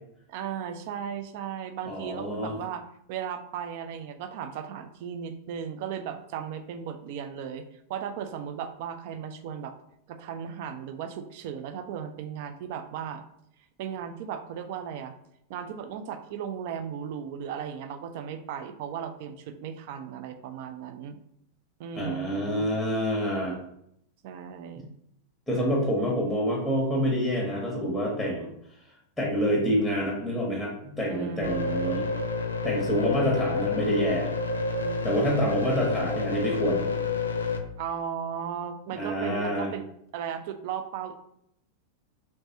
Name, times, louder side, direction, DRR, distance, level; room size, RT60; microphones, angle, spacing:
voice 1, 0.3-2.8 3.1-7.6 7.9-9.7 10.1-13.2 13.8-15.1 15.5-21.2 21.8-22.7 24.2-24.9 31.1-31.8 34.8-35.1 37.8-39.8 40.1-41.1, right 8 dB, 50° right, 9 dB, 0.4 m, -36 dB
voice 2, 1.9-2.5 22.0-23.6 25.5-28.5 29.2-32.0 32.6-34.3 35.0-36.8 38.9-39.7, equal, ahead, -2 dB, 0.9 m, -27 dB
sound 1, 31.4-37.6, left 3 dB, 75° left, 0.3 m, -29 dB
3.2 x 3.1 x 2.7 m, 0.74 s
figure-of-eight pair, 90°, 0 cm